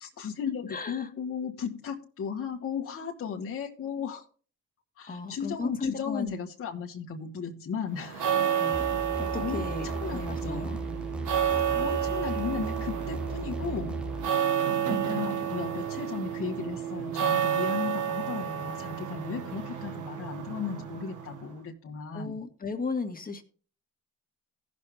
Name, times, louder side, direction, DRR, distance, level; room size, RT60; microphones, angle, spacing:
voice 1, 0.0-4.2 5.0-8.3 9.3-10.7 11.7-14.1 14.9-22.4, left 6 dB, 50° left, 1.4 m, -35 dB
voice 2, 0.7-1.1 5.1-6.3 8.6-8.9 9.2-10.8 22.1-23.4, left 4 dB, 30° left, 1.7 m, -35 dB
sound 1, 8.0-21.5, right 9 dB, 85° right, 1.5 m, -30 dB
sound 2, 8.7-14.3, right 1 dB, 5° right, 0.5 m, -37 dB
16.5 x 6.2 x 3.4 m
cardioid pair, 90°, 30 cm